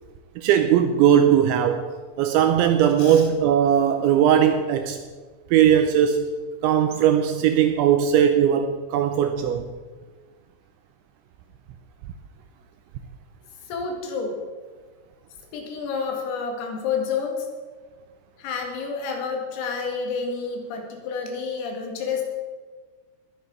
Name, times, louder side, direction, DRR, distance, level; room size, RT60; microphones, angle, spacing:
voice 1, 0.4-1.9 2.2-5.0 5.5-6.3 6.6-9.7, right 9 dB, 85° right, 7 dB, 2.7 m, -19 dB
voice 2, 13.7-14.4 15.5-17.5 18.4-22.2, left 5 dB, 85° left, 2 dB, 4.8 m, -29 dB
20.0 x 8.3 x 5.4 m, 1.4 s
omnidirectional pair, 5.9 m